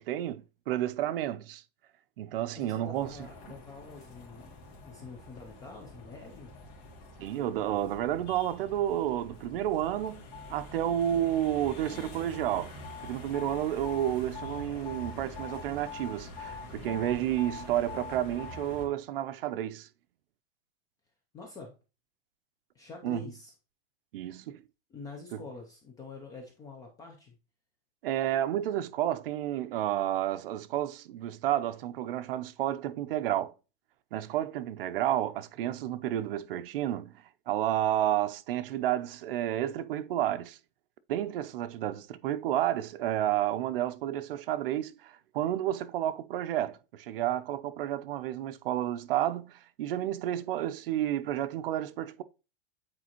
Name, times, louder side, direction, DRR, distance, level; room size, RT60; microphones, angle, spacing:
voice 1, 0.0-1.6 2.2-3.2 7.2-10.2 10.5-12.7 13.0-19.9 23.0-23.3 24.1-24.6 25.3-25.4 28.0-33.5 34.1-40.6 41.1-52.2, right 12 dB, 65° right, 0.6 m, -31 dB
voice 2, 2.6-4.5 4.8-6.5 21.3-21.7 22.7-23.5 24.9-27.4, left 4 dB, 10° left, 0.5 m, -46 dB
sound 1, 2.9-18.9, left 3 dB, 45° left, 2.4 m, -45 dB
8.8 x 4.2 x 2.9 m
supercardioid pair, 170°, 30 cm